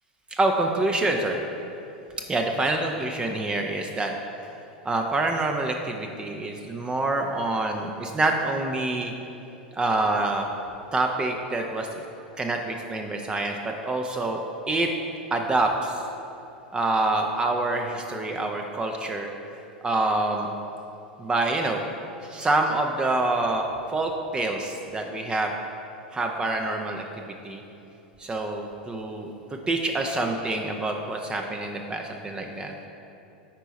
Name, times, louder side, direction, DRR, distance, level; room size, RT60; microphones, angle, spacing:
voice 1, 0.3-1.4 2.3-4.1 4.8-9.1 9.7-10.5 10.9-12.0 12.4-14.9 15.3-16.0 16.7-19.3 19.8-20.5 21.2-21.9 22.2-23.6 23.9-25.5 26.1-27.6 28.2-29.3 29.7-32.9, right 2 dB, 20° right, 3 dB, 0.5 m, -26 dB
8.9 x 4.6 x 4.0 m, 2.9 s
hypercardioid pair, 90°, 5 cm